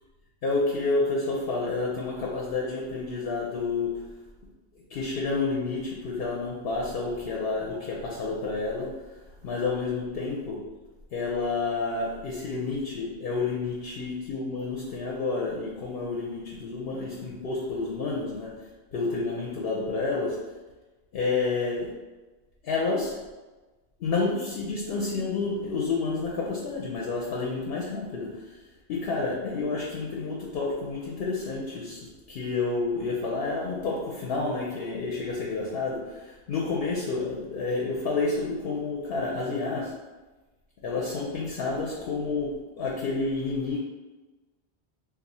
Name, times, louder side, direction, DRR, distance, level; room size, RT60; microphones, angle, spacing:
voice 1, 0.4-4.0 4.9-8.9 9.4-10.6 11.1-18.5 18.9-20.4 21.1-21.9 22.6-23.2 24.0-28.3 28.9-32.0 32.3-39.9 40.8-43.8, left 3 dB, 65° left, -3 dB, 0.8 m, -29 dB
2.7 x 2.3 x 4.1 m, 1.2 s
omnidirectional pair, 1.1 m